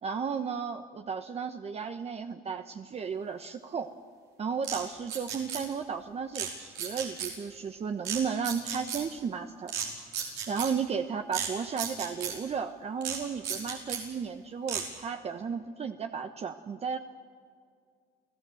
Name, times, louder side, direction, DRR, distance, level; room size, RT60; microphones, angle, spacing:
voice 1, 0.0-3.9 4.4-9.7 10.5-17.0, right 6 dB, 40° right, 7 dB, 1.0 m, -34 dB
sound 1, 4.6-4.8 5.1-5.6 6.3-6.5 6.8-7.3 8.0-8.2 8.4-9.0 9.7-9.9 10.1-10.7 11.3-11.5 11.8-12.3 13.0-13.2 13.4-14.0 14.7-14.8, right 8 dB, 85° right, 5.3 m, -33 dB
29.5 x 17.0 x 7.8 m, 2.1 s
cardioid pair, 110°, 17 cm